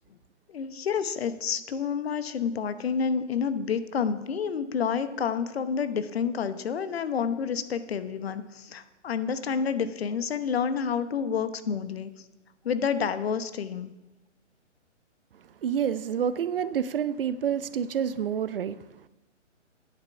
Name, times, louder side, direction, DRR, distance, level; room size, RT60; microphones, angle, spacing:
voice 1, 0.5-12.1 12.6-13.9, left 6 dB, 55° left, 1.0 m, -29 dB
voice 2, 15.6-19.1, right 8 dB, 50° right, 0.6 m, -28 dB
9.9 x 9.0 x 6.9 m
figure-of-eight pair, 135°, 37 cm